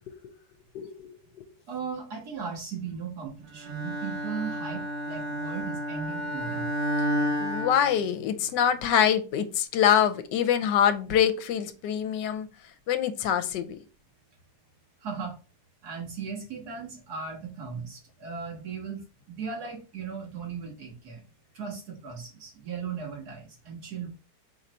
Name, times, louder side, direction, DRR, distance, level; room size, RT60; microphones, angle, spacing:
voice 1, 0.7-1.5 7.4-12.5 12.9-13.6, left 9 dB, 85° left, 10 dB, 1.2 m, -25 dB
voice 2, 1.7-6.7 15.0-15.4 15.8-19.0 19.3-21.2 21.5-24.1, right 6 dB, 65° right, -1 dB, 2.0 m, -37 dB
Bowed string instrument, 3.6-8.6, equal, 80° right, 1.5 m, -31 dB
4.8 x 2.6 x 4.2 m, 0.33 s
omnidirectional pair, 1.9 m